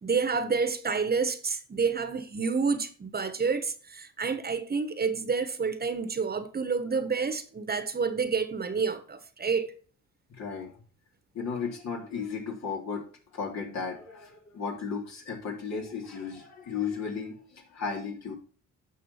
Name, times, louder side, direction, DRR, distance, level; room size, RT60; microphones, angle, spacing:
voice 1, 0.0-9.7, right 5 dB, 30° right, 1.4 m, -29 dB
voice 2, 10.3-10.7 11.3-13.1 13.3-18.3, left 5 dB, 60° left, 3.8 m, -35 dB
9.8 x 6.1 x 5.8 m
cardioid pair, 90°, 30 cm